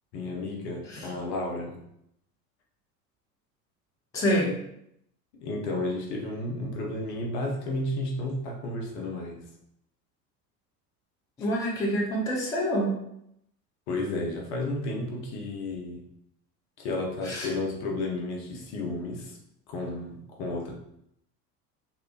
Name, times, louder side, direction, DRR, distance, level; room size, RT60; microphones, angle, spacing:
voice 1, 0.1-1.8 5.4-9.4 13.9-16.0 16.8-19.4 19.7-20.7, left 2 dB, 45° left, 0 dB, 0.8 m, -32 dB
voice 2, 4.1-4.5 11.4-12.9 17.2-17.5, equal, 10° left, -3 dB, 0.4 m, -26 dB
3.2 x 2.8 x 2.4 m, 0.77 s
figure-of-eight pair, 75°, 48 cm